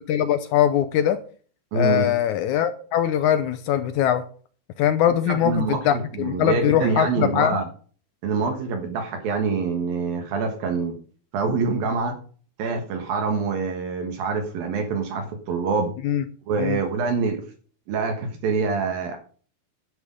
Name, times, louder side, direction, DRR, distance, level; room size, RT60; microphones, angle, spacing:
voice 1, 0.1-1.2 1.7-4.2 4.8-7.6 16.0-16.2 16.6-16.8, left 10 dB, 80° left, 1.8 m, -22 dB
voice 2, 1.7-2.1 5.3-7.7 8.2-11.0 11.3-12.2 12.6-15.9 16.5-17.4 17.9-19.2, right 4 dB, 75° right, 3.2 m, -25 dB
10.5 x 9.9 x 5.1 m
omnidirectional pair, 4.3 m